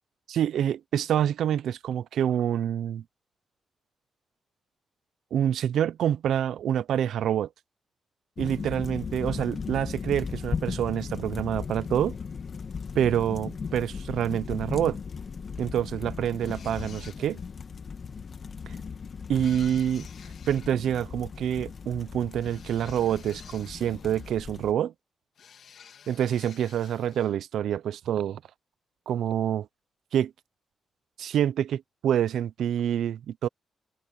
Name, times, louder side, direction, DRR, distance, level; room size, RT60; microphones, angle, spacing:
voice 1, 0.3-3.0 5.3-7.5 8.4-12.2 12.9-15.0 15.6-17.4 19.3-20.1 20.5-24.9 26.1-28.4 29.1-29.7 30.1-30.3 31.2-33.5, right 10 dB, 85° right, 0.7 m, -27 dB
sound 1, 8.4-24.7, left 5 dB, 50° left, 1.9 m, -37 dB
sound 2, 16.4-17.5 19.3-20.7 22.3-24.4 25.4-27.4, left 7 dB, 70° left, 1.9 m, -51 dB
cardioid pair, 85°, 0 cm